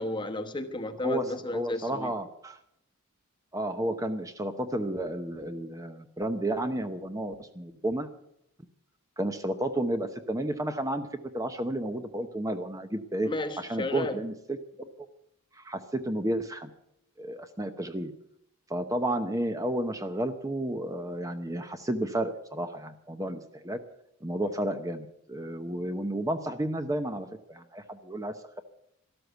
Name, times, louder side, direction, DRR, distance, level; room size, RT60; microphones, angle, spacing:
voice 1, 0.0-2.1 13.2-14.2, left 2 dB, 20° left, 7 dB, 1.1 m, -33 dB
voice 2, 1.0-2.6 3.5-8.1 9.2-11.1 11.3-13.3 13.6-14.9 15.5-16.7 17.2-18.1 18.7-23.8 24.2-28.6, right 1 dB, 15° right, 8 dB, 0.8 m, -32 dB
13.0 x 13.0 x 8.1 m, 0.78 s
head